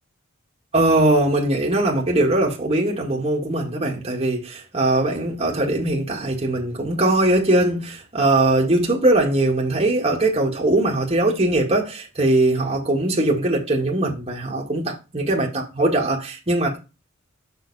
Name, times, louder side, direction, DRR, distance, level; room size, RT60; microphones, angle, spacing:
voice 1, 0.7-16.8, right 2 dB, 30° right, 1.8 m, -21 dB
6.7 x 6.1 x 4.1 m
head